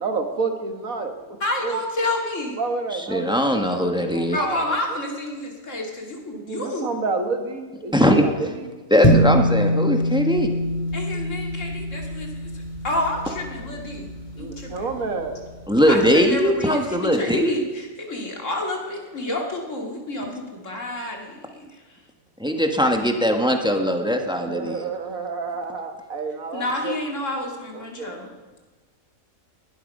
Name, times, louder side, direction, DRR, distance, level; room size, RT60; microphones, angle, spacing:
voice 1, 0.0-1.8 2.6-5.0 6.4-8.7 14.4-15.5 16.0-16.5 24.4-27.0 27.7-28.2, right 4 dB, 85° right, 5 dB, 2.0 m, -30 dB
voice 2, 1.4-2.6 4.3-6.9 10.9-14.1 14.4-14.9 15.9-21.8 26.5-28.3, left 1 dB, 65° left, 1 dB, 2.8 m, -29 dB
voice 3, 3.1-4.4 7.9-8.2 8.9-10.5 15.7-17.6 22.4-24.9, equal, 5° right, 4 dB, 1.3 m, -20 dB
sound 1, 9.0-15.6, equal, 25° left, 2.6 m, -24 dB
19.5 x 11.5 x 5.4 m, 1.3 s
omnidirectional pair, 1.4 m